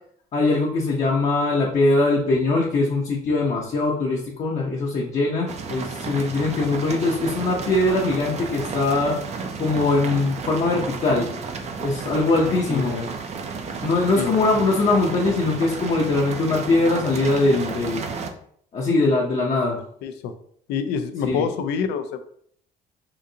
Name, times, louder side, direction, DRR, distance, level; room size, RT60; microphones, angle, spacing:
voice 1, 0.3-9.2 9.6-11.3 11.8-13.0 13.8-18.0 18.7-19.8 21.3-21.5, left 2 dB, 45° left, -3 dB, 0.7 m, -21 dB
sound 1, 5.5-18.3, right 5 dB, 40° right, 0.5 m, -32 dB
voice 2, 12.5-13.1 14.2-14.3 20.0-20.3 20.7-22.3, left 6 dB, 85° left, 9 dB, 0.4 m, -27 dB
3.7 x 2.5 x 2.7 m, 0.65 s
cardioid pair, 110°, 17 cm